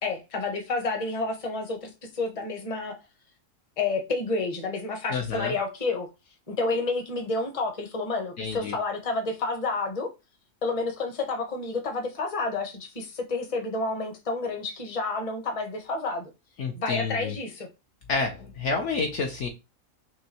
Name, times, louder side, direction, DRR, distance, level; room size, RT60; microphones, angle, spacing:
voice 1, 0.0-3.0 3.8-6.1 6.5-10.1 10.6-16.3 16.7-17.7, left 3 dB, 30° left, 0.9 m, -30 dB
voice 2, 5.1-5.5 8.4-8.7 16.6-17.3 18.1-19.5, left 4 dB, 65° left, 1.0 m, -29 dB
6.0 x 2.2 x 2.9 m
omnidirectional pair, 1.5 m